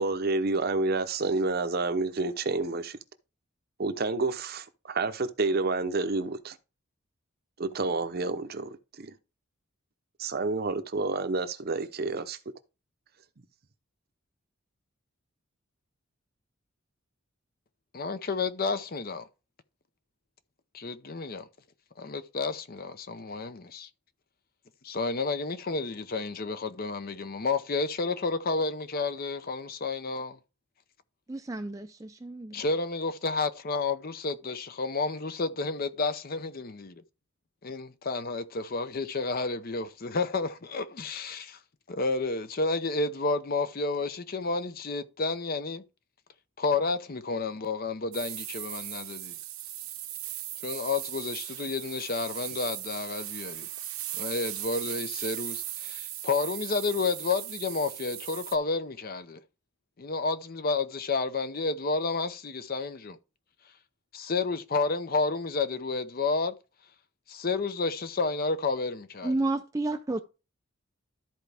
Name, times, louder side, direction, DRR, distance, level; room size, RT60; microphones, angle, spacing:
voice 1, 0.0-3.0 3.8-6.5 7.6-9.1 10.2-12.4, right 3 dB, 45° right, 0.7 m, -29 dB
voice 2, 17.9-19.3 20.7-21.5 22.0-23.9 24.8-30.4 32.5-37.0 37.6-41.6 41.9-45.8 46.6-49.3 50.6-53.7 54.1-59.4 60.0-63.2 64.1-66.5 67.3-69.3, left 3 dB, 45° left, 0.6 m, -31 dB
voice 3, 31.3-32.6 69.2-70.2, right 2 dB, 15° right, 0.4 m, -31 dB
sound 1, 48.1-58.5, right 14 dB, 85° right, 1.0 m, -38 dB
13.0 x 4.5 x 3.4 m
head